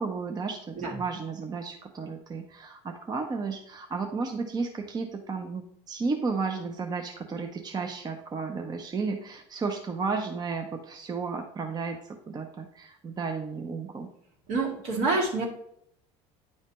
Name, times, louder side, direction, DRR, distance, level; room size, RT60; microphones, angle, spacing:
voice 1, 0.0-14.1, right 4 dB, 30° right, 4 dB, 0.7 m, -33 dB
voice 2, 14.5-15.5, right 3 dB, 70° right, -1 dB, 2.1 m, -27 dB
9.2 x 3.2 x 4.2 m, 0.71 s
supercardioid pair, 95°, 14 cm